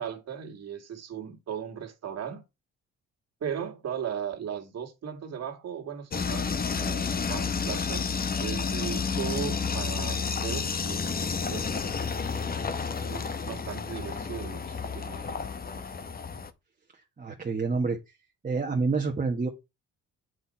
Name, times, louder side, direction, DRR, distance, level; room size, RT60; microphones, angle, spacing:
voice 1, 0.0-2.4 3.4-8.1 8.4-11.9 12.2-15.4 15.8-15.9, right 8 dB, 60° right, 2.0 m, -37 dB
sound 1, 6.1-16.5, left 5 dB, 30° left, 0.9 m, -31 dB
voice 2, 17.2-18.0 18.4-19.5, right 4 dB, 25° right, 1.3 m, -27 dB
7.9 x 4.5 x 5.6 m
cardioid pair, 90°, 30 cm